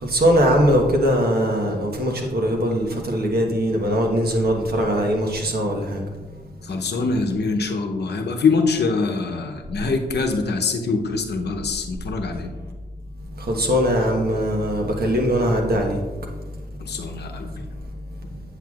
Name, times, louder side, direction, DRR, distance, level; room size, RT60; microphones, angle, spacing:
voice 1, 0.0-6.0 13.5-16.0, equal, 60° right, 1 dB, 1.2 m, -21 dB
voice 2, 6.6-12.5 16.8-17.5, left 4 dB, 70° left, 4 dB, 0.8 m, -24 dB
8.0 x 7.7 x 2.4 m, 1.3 s
wide cardioid pair, 135°, 18 cm